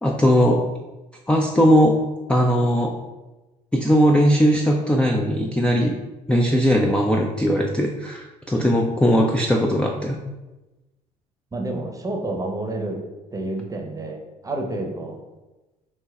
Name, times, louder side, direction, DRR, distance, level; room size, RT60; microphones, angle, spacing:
voice 1, 0.0-0.6 1.3-2.0 2.3-2.9 3.7-6.0 6.3-10.2, equal, 5° left, 0 dB, 0.4 m, -19 dB
voice 2, 11.5-13.0 13.3-15.2, right 2 dB, 15° right, 2 dB, 0.8 m, -29 dB
5.5 x 3.0 x 2.3 m, 1.1 s
figure-of-eight pair, 55°, 21 cm